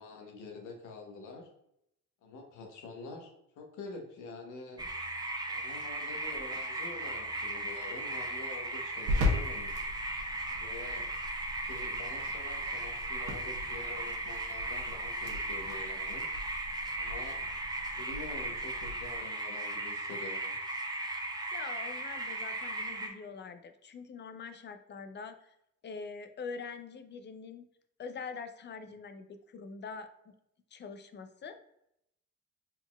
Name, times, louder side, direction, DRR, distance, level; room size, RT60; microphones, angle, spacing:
voice 1, 0.0-1.5 2.2-4.8 5.5-9.7 10.6-11.1 11.6-16.3 17.0-17.4 17.9-20.5, left 3 dB, 80° left, 2 dB, 1.1 m, -46 dB
sound 1, 4.8-23.1, right 2 dB, 15° right, 0.7 m, -37 dB
sound 2, 7.0-19.2, left 2 dB, 85° right, 1.1 m, -39 dB
voice 2, 21.5-25.6 25.8-27.7 28.0-30.3 30.7-31.6, left 5 dB, 35° left, 9 dB, 0.5 m, -44 dB
4.3 x 4.0 x 2.3 m, 0.78 s
cardioid pair, 90°, 30 cm